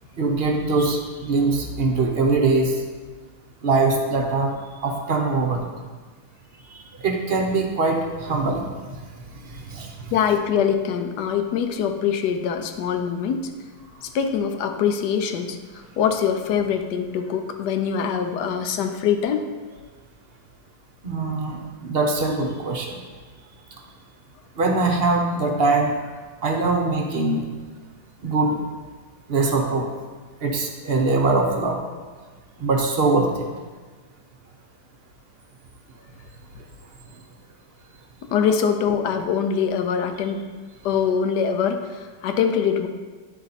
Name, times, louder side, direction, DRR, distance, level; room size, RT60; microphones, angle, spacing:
voice 1, 0.2-2.8 3.6-4.5 4.8-5.7 7.0-8.7 9.7-9.9 21.0-23.0 24.6-26.0 26.4-27.4 28.2-28.6 29.3-29.9 30.4-31.8 32.6-33.4, right 3 dB, 50° right, 2 dB, 0.8 m, -22 dB
voice 2, 10.1-13.5 14.0-15.6 16.0-19.4 38.2-40.4 40.8-42.9, left 7 dB, 85° left, 7 dB, 1.3 m, -23 dB
9.5 x 4.2 x 4.1 m, 1.4 s
omnidirectional pair, 1.7 m